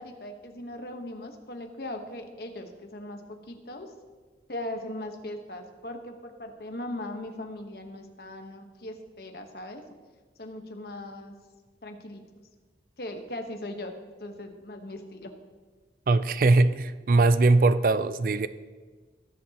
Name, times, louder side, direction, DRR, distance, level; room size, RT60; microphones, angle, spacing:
voice 1, 0.0-3.9 4.5-9.8 10.4-11.3 11.8-12.2 13.0-13.9 14.2-15.3, left 1 dB, 60° left, 4 dB, 1.1 m, -39 dB
voice 2, 16.1-18.5, right 3 dB, 50° right, 14 dB, 0.4 m, -21 dB
20.0 x 7.7 x 2.9 m, 1.4 s
head